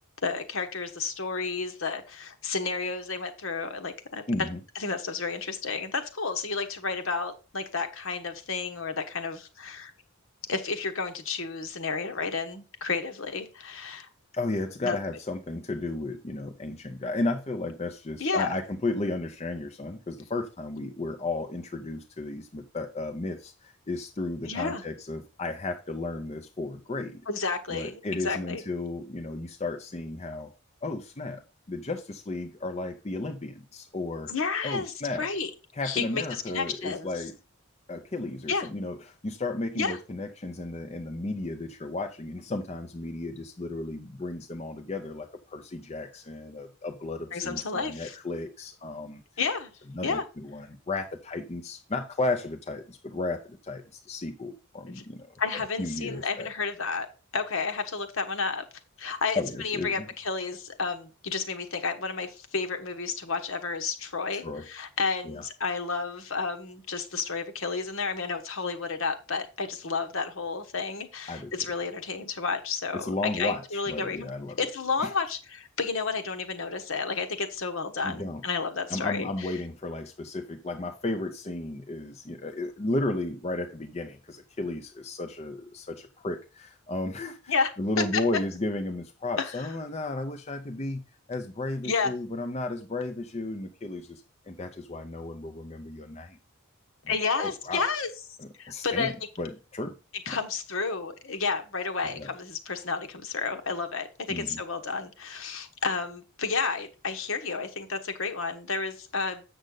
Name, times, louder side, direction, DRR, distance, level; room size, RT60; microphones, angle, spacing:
voice 1, 0.2-4.5 4.8-9.9 10.5-14.1 14.8-15.0 18.2-18.5 24.5-24.8 27.3-28.6 34.3-35.5 35.8-37.1 38.5-38.7 39.7-40.0 47.3-48.2 49.4-49.7 50.0-50.2 54.9-55.0 55.4-57.1 57.3-58.6 59.0-74.3 74.6-79.5 87.5-87.7 88.1-88.2 89.4-89.5 91.8-92.1 97.1-98.1 98.6-99.1 100.3-109.4, left 4 dB, 65° left, 7 dB, 1.2 m, -31 dB
voice 2, 4.3-4.6 14.3-27.2 27.7-30.5 30.8-31.4 31.7-34.3 34.6-35.3 35.7-37.3 37.9-49.2 49.9-56.5 59.4-59.9 64.3-64.7 65.2-65.4 71.3-71.5 72.9-74.6 75.0-75.1 78.0-78.4 78.9-91.0 91.3-96.4 97.0-97.8 98.4-100.0 100.3-100.4 102.2-102.3 104.3-104.6, left 2 dB, 30° left, 5 dB, 0.6 m, -34 dB
7.7 x 6.4 x 3.8 m, 0.32 s
head